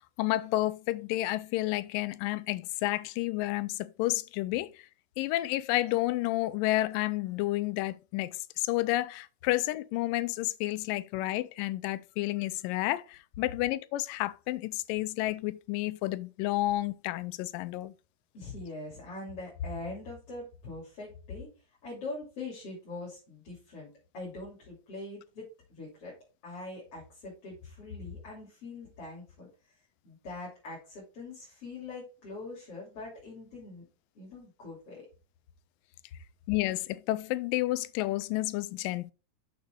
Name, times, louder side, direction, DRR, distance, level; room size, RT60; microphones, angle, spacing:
voice 1, 0.2-4.7 5.2-17.9 36.5-39.1, left 17 dB, 90° left, 2.2 m, -30 dB
voice 2, 18.3-21.5 21.8-26.2 26.4-29.8 30.0-33.9 34.2-35.1, left 3 dB, 45° left, 3.8 m, -42 dB
7.0 x 6.7 x 4.6 m
omnidirectional pair, 3.8 m